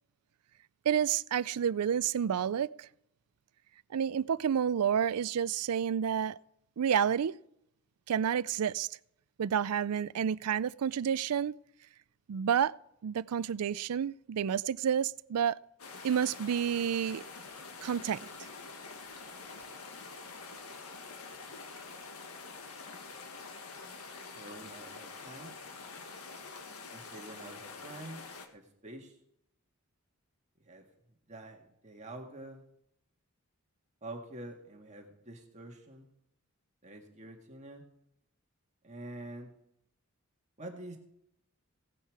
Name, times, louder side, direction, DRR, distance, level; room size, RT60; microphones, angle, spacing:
voice 1, 0.9-2.9 3.9-6.4 6.8-7.3 8.1-8.9 9.4-11.5 12.3-12.7 13.0-15.6 16.0-17.2 17.8-18.2, right 8 dB, 85° right, 0.4 m, -29 dB
sound 1, 15.8-28.5, left 4 dB, 80° left, 1.7 m, -46 dB
voice 2, 24.3-25.6 26.9-28.2 28.5-29.1 30.7-30.8 31.3-32.6 34.0-36.1 36.8-37.8 38.8-39.5 40.6-41.0, right 1 dB, 30° right, 1.8 m, -46 dB
17.0 x 10.0 x 4.8 m
head